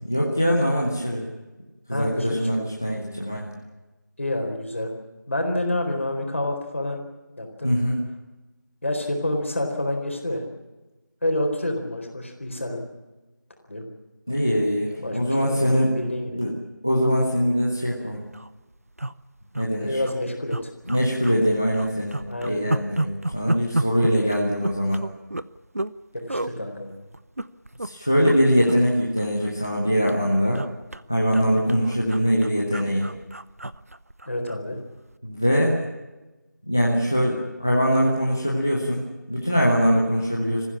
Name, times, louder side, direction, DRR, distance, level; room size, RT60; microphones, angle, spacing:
voice 1, 0.0-1.3 1.9-3.5 7.6-8.0 14.3-15.9 16.3-16.5 16.8-18.2 19.6-20.0 20.9-22.2 22.4-25.0 27.8-30.6 31.1-33.1 35.2-35.8 36.7-40.6, equal, 10° left, -3 dB, 0.7 m, -22 dB
voice 2, 1.9-2.4 4.2-4.9 5.3-7.0 7.4-7.7 8.8-10.5 11.2-12.8 13.7-13.8 15.0-16.4 19.8-20.7 22.3-22.6 24.0-24.1 26.1-26.9 34.3-34.8, left 1 dB, 40° left, 3 dB, 4.2 m, -28 dB
sound 1, 17.5-17.7 18.0-18.1 18.3-18.5 19.0-19.7 20.0-20.1 20.5-21.4 21.7-26.0 26.3-26.5 27.1-27.9 28.2-28.4 28.7-29.8 30.1-34.6 35.0-35.1, right 1 dB, 50° right, 0.7 m, -31 dB
24.0 x 15.0 x 8.6 m, 1.1 s
figure-of-eight pair, 170°, 10 cm